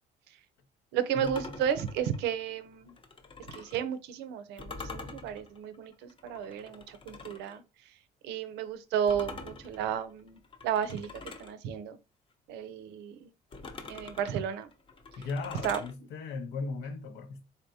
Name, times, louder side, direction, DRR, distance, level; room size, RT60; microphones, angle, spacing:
voice 1, 0.9-2.9 3.5-7.6 8.2-12.0 12.5-13.3 13.9-14.7 15.6-15.8, right 9 dB, 90° right, 0.6 m, -33 dB
sound 1, 1.2-3.8 4.6-7.6 9.1-11.5 13.5-15.9, left 3 dB, 30° left, 0.8 m, -45 dB
voice 2, 15.1-17.5, left 4 dB, 80° left, 0.9 m, -37 dB
4.0 x 3.4 x 2.7 m
cardioid pair, 110°, 17 cm